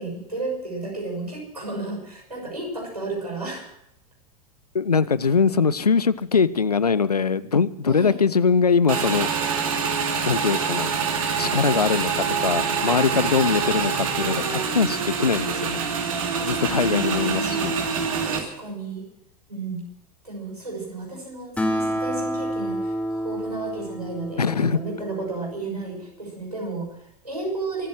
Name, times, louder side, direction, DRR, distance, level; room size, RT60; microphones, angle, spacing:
voice 1, 0.0-3.7 7.9-8.2 16.3-17.7 18.3-19.0 19.5-19.8 20.2-27.9, right 3 dB, 85° right, 0 dB, 6.4 m, -33 dB
voice 2, 4.7-9.3 10.3-10.9 11.4-15.8 16.4-17.7 24.4-24.8, left 5 dB, 80° left, 18 dB, 0.7 m, -22 dB
Motorcycle / Engine, 8.9-18.4, right 6 dB, 60° right, 2.8 m, -25 dB
Acoustic guitar, 21.6-25.3, equal, 5° left, 2.8 m, -29 dB
24.5 x 9.3 x 6.2 m, 0.78 s
figure-of-eight pair, 90°, 20 cm